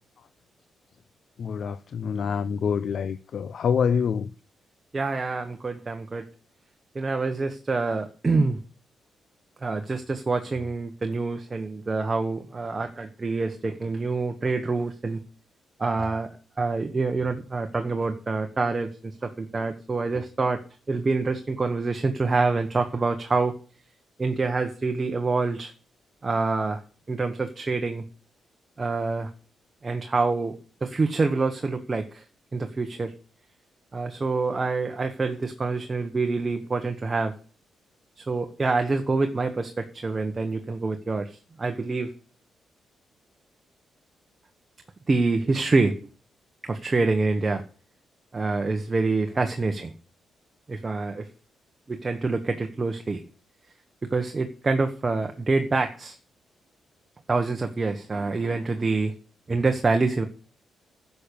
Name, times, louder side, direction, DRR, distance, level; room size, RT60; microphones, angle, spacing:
voice 1, 1.4-4.3, left 7 dB, 55° left, 0.5 m, -26 dB
voice 2, 4.9-6.2 6.9-8.6 9.6-15.2 15.8-16.3 16.6-20.6 20.9-23.5 24.2-25.7 26.2-26.8 27.1-28.0 28.8-29.3 29.8-32.2 32.5-33.1 33.9-37.3 38.2-42.1 45.1-46.0 46.6-47.6 48.3-49.9 50.7-51.3 51.9-53.2 54.0-56.2 57.3-59.1 59.5-60.2, right 3 dB, 25° right, 1.2 m, -26 dB
11.0 x 6.8 x 8.5 m
cardioid pair, 135°, 0 cm